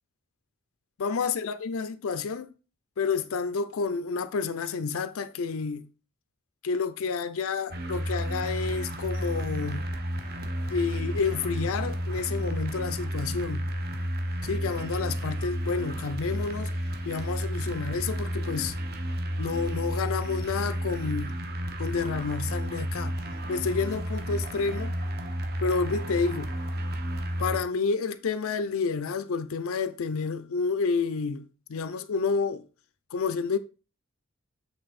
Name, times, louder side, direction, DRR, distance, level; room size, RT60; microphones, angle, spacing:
voice 1, 1.0-2.5 3.0-5.9 6.6-9.9 10.7-13.7 14.4-16.7 17.0-18.8 19.4-21.3 21.8-23.2 23.5-24.9 25.6-26.5 27.4-32.7 33.1-33.6, left 5 dB, 70° left, 0.4 m, -29 dB
sound 1, 7.7-27.6, equal, 45° right, 0.8 m, -32 dB
7.8 x 3.4 x 4.1 m
head